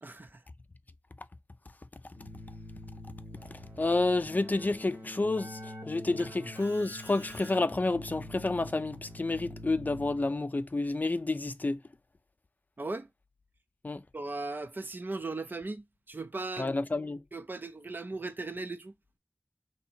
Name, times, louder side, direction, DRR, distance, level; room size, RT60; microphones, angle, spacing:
voice 1, 0.0-0.4 6.2-6.3 12.8-13.1 14.1-16.7 17.3-18.9, right 3 dB, 55° right, 0.5 m, -38 dB
Keyboard (musical), 2.1-10.5, left 1 dB, 85° right, 1.7 m, -45 dB
voice 2, 3.8-11.8 13.8-14.0 16.6-17.2, left 2 dB, 45° left, 0.4 m, -30 dB
2.9 x 2.7 x 4.3 m
wide cardioid pair, 55°, 4 cm